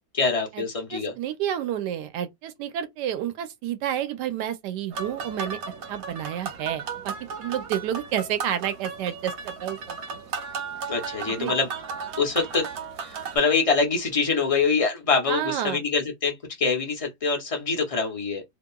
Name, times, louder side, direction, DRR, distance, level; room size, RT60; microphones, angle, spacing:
voice 1, 0.1-1.1 10.9-11.7 12.2-12.7 13.0-18.4, left 4 dB, 55° left, 0.3 m, -25 dB
voice 2, 0.9-5.6 5.9-10.2 11.3-11.5 15.3-15.8, right 10 dB, 90° right, 1.2 m, -30 dB
sound 1, 4.9-13.4, right 5 dB, 65° right, 1.1 m, -35 dB
2.8 x 2.5 x 2.2 m
omnidirectional pair, 1.8 m